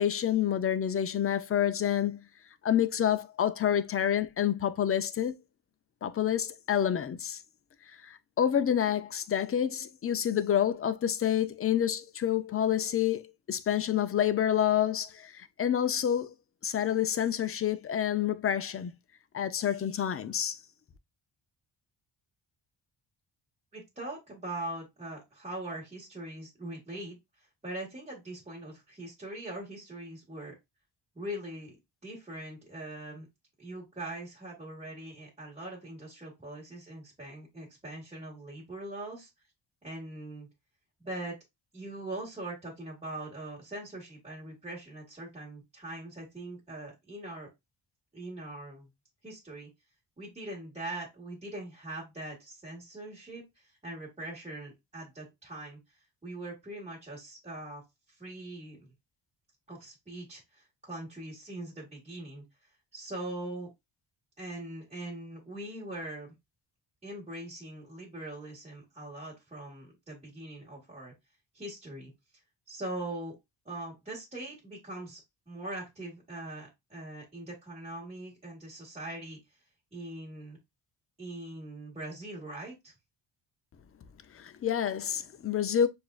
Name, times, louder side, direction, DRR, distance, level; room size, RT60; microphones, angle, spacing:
voice 1, 0.0-2.2 2.6-5.3 6.0-7.4 7.9-16.3 16.6-18.9 19.3-20.6 84.3-85.9, left 9 dB, 30° left, 0.4 m, -28 dB
voice 2, 23.7-27.2 27.6-30.6 31.2-31.8 32.0-33.3 33.6-39.3 39.8-40.5 41.0-41.4 41.7-47.5 48.1-48.9 49.2-49.7 50.2-53.4 53.8-55.8 56.2-57.8 58.2-58.9 59.7-62.4 62.9-63.7 64.4-66.3 67.0-71.1 71.5-72.1 72.7-73.4 73.7-75.2 75.5-79.4 79.9-80.6 81.2-82.9, right 1 dB, 15° right, 1.7 m, -41 dB
6.7 x 2.6 x 2.3 m
wide cardioid pair, 125°, 47 cm